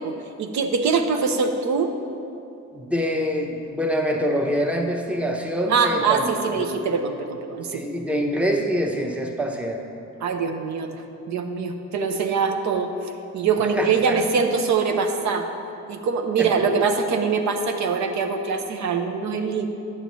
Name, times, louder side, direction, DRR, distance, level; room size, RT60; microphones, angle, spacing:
voice 1, 0.0-1.9 5.7-7.8 10.2-11.0 11.3-15.5 15.9-19.7, right 5 dB, 70° right, 6 dB, 0.7 m, -23 dB
voice 2, 2.7-6.7 7.7-9.8 13.8-14.2 16.4-16.5, equal, 5° right, 2 dB, 0.8 m, -25 dB
9.8 x 6.9 x 3.0 m, 2.7 s
cardioid pair, 90°, 30 cm